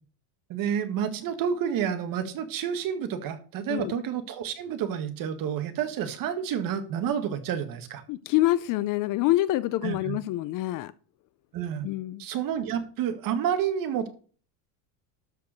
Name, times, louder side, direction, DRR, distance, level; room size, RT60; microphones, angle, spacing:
voice 1, 0.5-8.0 9.8-10.2 11.5-11.9 12.2-14.1, right 8 dB, 45° right, 1.8 m, -29 dB
voice 2, 8.1-10.9 11.8-12.2, left 16 dB, 45° left, 0.5 m, -26 dB
12.5 x 4.7 x 6.6 m
cardioid pair, 145°, 46 cm